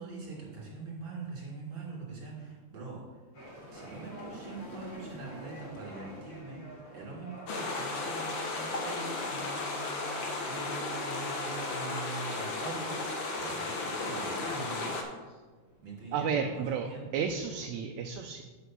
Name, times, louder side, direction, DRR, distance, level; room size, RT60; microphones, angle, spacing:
voice 1, 0.0-3.2 3.7-6.6 6.9-14.9 15.8-17.1, right 3 dB, 40° right, -3 dB, 3.1 m, -43 dB
sound 1, 3.3-17.6, equal, 80° left, 4.7 m, -51 dB
sound 2, 7.5-15.0, left 3 dB, 60° left, 1.4 m, -34 dB
voice 2, 16.1-16.9 17.1-18.4, right 7 dB, 80° right, 4 dB, 1.8 m, -32 dB
8.0 x 5.6 x 6.1 m, 1.3 s
omnidirectional pair, 3.4 m